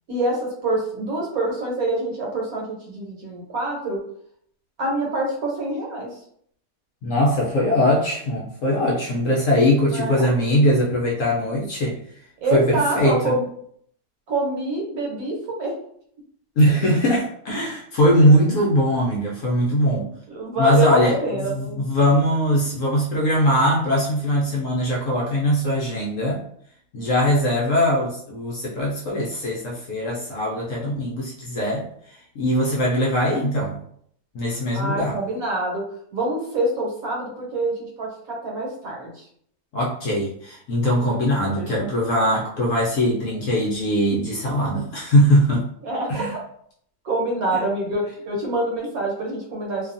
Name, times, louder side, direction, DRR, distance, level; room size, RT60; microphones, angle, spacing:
voice 1, 0.1-4.0 4.8-6.1 9.9-10.4 12.4-13.4 14.3-15.7 20.3-21.8 34.7-35.8 36.1-39.2 41.6-41.9 45.8-46.1 47.0-49.9, right 2 dB, 65° right, -2 dB, 1.2 m, -26 dB
voice 2, 7.0-12.0 12.5-13.3 16.6-20.1 20.6-26.4 26.9-33.8 34.3-35.2 39.7-45.7 46.1-46.3 47.5-47.6, equal, 65° left, -3 dB, 0.8 m, -21 dB
2.6 x 2.3 x 2.5 m, 0.65 s
omnidirectional pair, 1.8 m